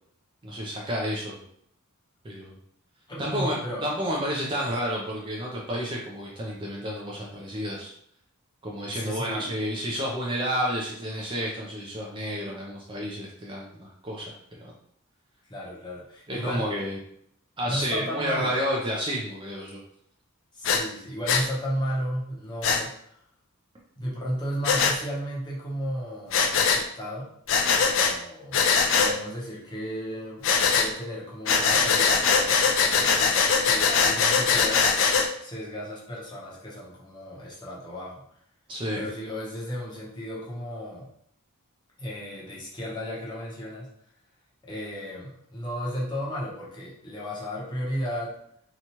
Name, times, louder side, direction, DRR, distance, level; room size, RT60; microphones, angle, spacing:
voice 1, 0.4-1.4 2.2-2.6 3.2-7.9 8.6-14.7 16.3-17.0 17.6-19.8 38.7-39.0, equal, 20° right, -3 dB, 0.4 m, -30 dB
voice 2, 3.1-3.9 8.9-9.5 15.5-16.7 17.6-18.6 20.5-23.0 24.0-27.3 27.8-28.7 29.0-34.9 35.4-38.3 38.9-41.1 42.0-43.9 44.6-48.4, equal, 20° left, -5 dB, 0.7 m, -34 dB
Breathing, 20.6-20.8 21.3-21.4 22.6-22.8 24.6-24.9 26.3-26.8 27.5-28.1 28.5-29.1 30.4-30.9 31.5-35.3, left 5 dB, 60° left, 0.4 m, -21 dB
2.9 x 2.3 x 2.8 m, 0.69 s
head